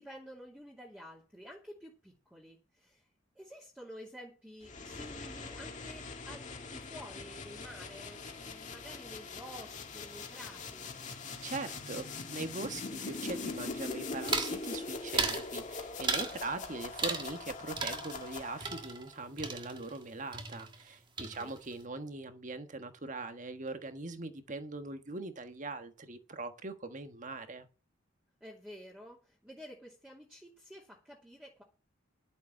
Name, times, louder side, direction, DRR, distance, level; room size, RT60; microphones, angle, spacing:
voice 1, 0.0-3.1 3.3-10.9 16.1-16.9 21.2-21.6 28.4-31.6, equal, 5° right, 2.5 m, -51 dB
sound 1, 4.6-18.9, left 4 dB, 40° left, 2.1 m, -42 dB
voice 2, 11.4-27.7, right 3 dB, 40° right, 1.4 m, -41 dB
sound 2, 14.3-14.6 15.1-15.5 16.0-16.4 17.0-17.5 17.8-20.1 20.3-20.9 21.2-21.7, right 4 dB, 25° right, 1.5 m, -35 dB
11.5 x 7.0 x 7.1 m
head